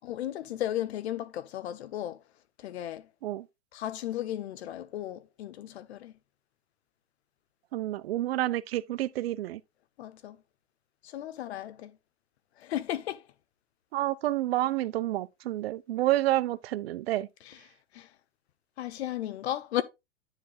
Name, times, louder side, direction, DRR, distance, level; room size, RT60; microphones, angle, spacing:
voice 1, 0.0-2.2 2.6-3.1 3.7-6.1 10.0-10.4 11.0-12.0 12.6-13.2 17.5-17.6 17.9-18.1 18.8-19.8, left 12 dB, 60° left, 1.0 m, -35 dB
voice 2, 7.7-9.6 13.9-17.3, right 15 dB, 55° right, 0.6 m, -29 dB
10.0 x 3.4 x 4.1 m
supercardioid pair, 160°, 36 cm